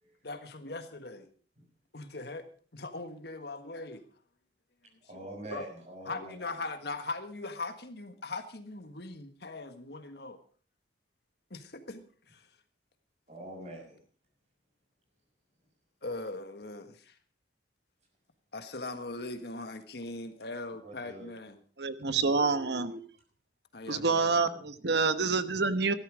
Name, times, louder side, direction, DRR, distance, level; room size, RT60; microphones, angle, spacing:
voice 1, 0.2-1.3 1.9-2.4 2.7-4.0 5.1-5.6 6.0-10.4 11.5-12.5 16.0-17.1 18.5-21.6 23.7-24.6, left 2 dB, 60° left, 8 dB, 1.6 m, -40 dB
voice 2, 5.1-6.3 13.3-14.0 20.8-21.3, right 1 dB, 40° right, 1 dB, 6.3 m, -44 dB
voice 3, 21.8-23.0 23.9-25.9, right 4 dB, 65° right, 11 dB, 1.1 m, -27 dB
14.5 x 13.0 x 5.1 m, 0.42 s
head